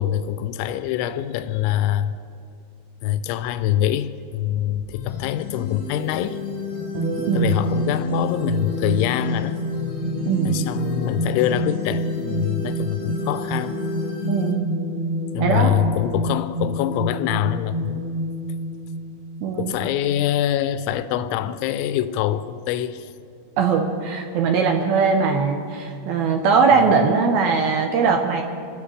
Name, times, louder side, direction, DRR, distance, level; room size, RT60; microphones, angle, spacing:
voice 1, 0.0-2.2 3.0-6.4 7.1-9.6 10.5-13.8 15.3-18.2 19.6-23.1 26.8-26.9, left 11 dB, 85° left, 11 dB, 2.9 m, -24 dB
sound 1, 4.9-14.5, left 6 dB, 70° left, 1.5 m, -32 dB
sound 2, 6.9-19.8, equal, 55° right, 1.9 m, -28 dB
voice 2, 7.3-7.6 10.3-10.7 14.3-14.7 15.4-15.7 19.4-19.7 23.6-28.4, right 5 dB, 80° right, 3 dB, 2.3 m, -20 dB
26.0 x 15.5 x 3.3 m, 2.4 s
omnidirectional pair, 5.4 m